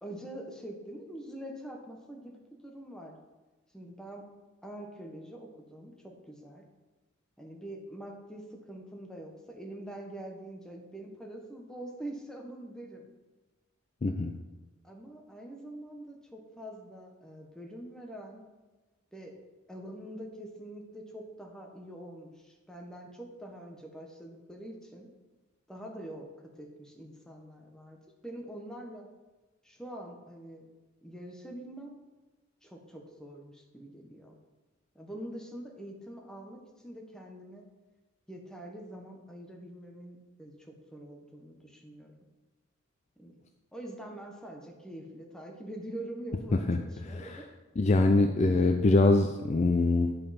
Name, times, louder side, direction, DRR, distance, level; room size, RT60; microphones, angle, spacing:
voice 1, 0.0-2.3 2.6-3.2 3.7-4.2 4.6-6.6 7.4-13.1 14.8-18.4 19.1-19.3 19.7-25.1 25.7-26.3 26.5-28.0 28.2-29.1 29.6-30.6 31.0-32.0 32.6-34.4 34.9-37.6 38.3-40.5 40.9-42.1 43.2-43.3 43.7-47.4, right 1 dB, 5° left, 0 dB, 1.1 m, -44 dB
voice 2, 14.0-14.3 46.7-46.8 47.1-47.4 47.8-50.1, left 2 dB, 35° left, 5 dB, 0.4 m, -24 dB
9.6 x 5.3 x 4.2 m, 1.2 s
head